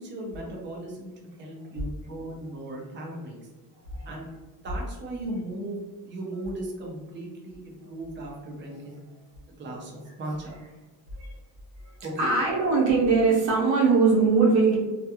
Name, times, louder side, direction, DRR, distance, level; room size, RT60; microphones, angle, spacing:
voice 1, 0.0-3.5 4.0-4.3 4.6-9.0 9.5-10.6 12.0-12.3, right 1 dB, 25° right, -2 dB, 0.5 m, -37 dB
voice 2, 12.2-14.8, right 4 dB, 85° right, -3 dB, 0.9 m, -21 dB
2.3 x 2.2 x 2.8 m, 1.2 s
cardioid pair, 120°, 43 cm